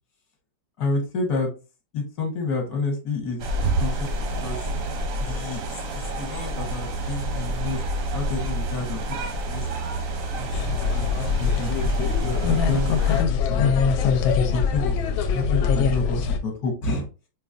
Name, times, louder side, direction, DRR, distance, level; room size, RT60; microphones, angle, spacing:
voice 1, 0.8-1.5 1.9-3.5 3.8-4.6 5.2-7.8 8.1-9.8 10.4-13.7 14.5-15.0 15.3-17.1, left 3 dB, 55° left, 2 dB, 1.3 m, -30 dB
sound 1, 3.4-13.2, right 1 dB, 65° right, 0.8 m, -28 dB
sound 2, 10.5-16.4, left 6 dB, 85° left, 1.4 m, -23 dB
5.0 x 2.3 x 2.5 m, 0.31 s
omnidirectional pair, 2.1 m